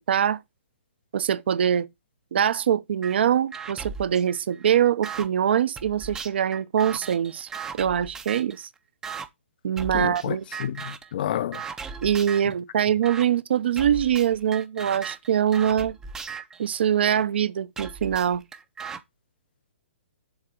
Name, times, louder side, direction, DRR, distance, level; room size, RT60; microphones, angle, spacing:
voice 1, 0.1-0.4 1.1-1.9 2.3-7.5 7.7-8.7 9.6-10.4 12.0-16.0 16.6-18.4, right 9 dB, 60° right, 0.7 m, -23 dB
sound 1, 3.0-3.2 3.5-5.3 5.8-8.6 9.0-9.3 9.8-10.3 10.5-11.1 11.5-12.5 13.0-13.3 13.8-17.2 17.8-19.0, right 5 dB, 10° right, 0.5 m, -37 dB
voice 2, 9.9-11.6, left 10 dB, 45° left, 0.5 m, -30 dB
7.2 x 3.8 x 6.4 m
hypercardioid pair, 155°, 7 cm